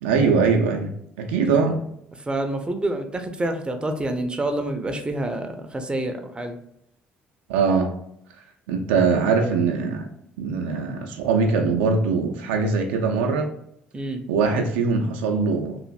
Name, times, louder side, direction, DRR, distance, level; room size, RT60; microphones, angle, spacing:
voice 1, 0.0-1.8 7.5-7.9 8.7-10.1 10.4-13.5 14.3-15.8, right 4 dB, 70° right, 3 dB, 0.4 m, -22 dB
voice 2, 2.3-6.6 13.9-14.2, right 1 dB, 15° right, 6 dB, 0.5 m, -27 dB
3.1 x 2.5 x 2.3 m, 0.74 s
figure-of-eight pair, 50°, 6 cm